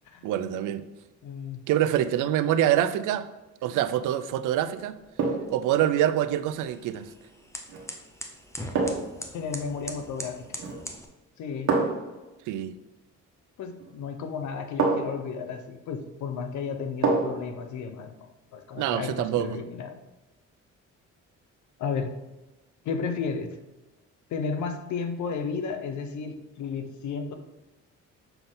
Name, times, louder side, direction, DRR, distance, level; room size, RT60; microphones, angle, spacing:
voice 1, 0.2-0.8 1.7-3.3 3.6-5.0 5.5-7.1 12.5-12.7 18.8-19.6, right 11 dB, 85° right, 12 dB, 0.5 m, -25 dB
voice 2, 1.2-1.6 9.3-10.5 11.4-11.7 13.6-19.9 21.8-22.2 22.8-23.5 24.3-27.3, left 5 dB, 70° left, 7 dB, 0.8 m, -33 dB
sound 1, 3.6-4.0 5.2-5.6 7.7-7.9 8.7-9.2 10.5-10.9 11.7-12.1 13.8-13.9 14.8-15.3 17.0-17.5 17.9-18.0, right 4 dB, 70° right, 1.4 m, -27 dB
sound 2, 4.3-11.1, left 1 dB, 10° left, 0.8 m, -43 dB
6.8 x 4.0 x 3.9 m, 1.1 s
cardioid pair, 90°, 30 cm